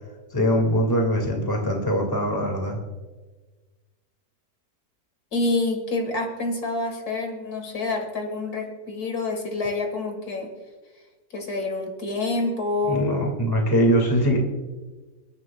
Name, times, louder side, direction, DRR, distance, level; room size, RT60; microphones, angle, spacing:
voice 1, 0.3-2.8 12.9-14.4, equal, 15° left, 1 dB, 2.1 m, -22 dB
voice 2, 5.3-10.5 11.3-13.1, left 2 dB, 60° left, 4 dB, 2.2 m, -27 dB
29.0 x 11.0 x 2.3 m, 1.3 s
omnidirectional pair, 1.8 m